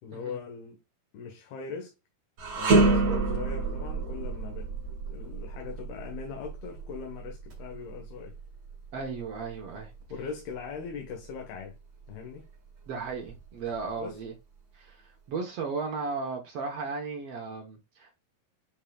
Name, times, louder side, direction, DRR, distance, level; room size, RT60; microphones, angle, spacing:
voice 1, 0.0-0.8 1.1-1.9 2.5-4.7 5.1-8.4 10.1-11.8 12.1-12.5 14.0-14.2, left 6 dB, 80° left, 3.3 m, -40 dB
sound 1, 2.4-11.6 12.0-12.2 13.1-14.0, right 3 dB, 45° right, 3.2 m, -29 dB
voice 2, 8.9-9.9 12.9-14.3 14.7-18.2, right 4 dB, 70° right, 1.4 m, -35 dB
11.0 x 4.7 x 2.3 m
omnidirectional pair, 4.5 m